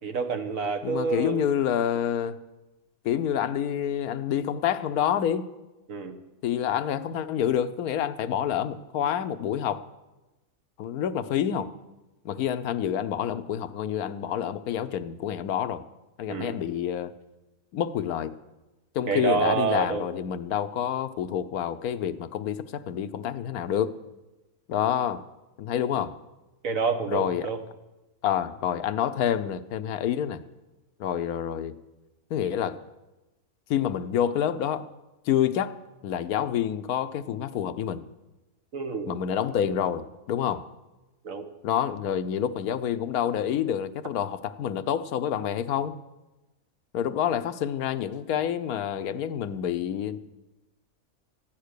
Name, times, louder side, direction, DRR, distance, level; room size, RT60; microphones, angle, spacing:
voice 1, 0.0-1.5 5.9-6.2 16.3-16.6 19.1-20.1 26.6-27.6 38.7-39.2 41.2-41.5, right 5 dB, 65° right, 5 dB, 1.6 m, -28 dB
voice 2, 0.8-2.4 3.0-5.5 6.4-9.8 10.8-11.7 12.2-15.8 16.2-17.1 17.7-18.3 18.9-23.9 24.7-25.2 25.6-26.2 27.1-27.5 28.2-30.4 31.0-31.8 32.3-32.8 33.7-34.9 35.3-38.0 39.1-40.7 41.6-46.0 46.9-50.2, left 9 dB, 80° left, 12 dB, 1.2 m, -28 dB
14.5 x 10.5 x 6.6 m, 1.1 s
omnidirectional pair, 1.5 m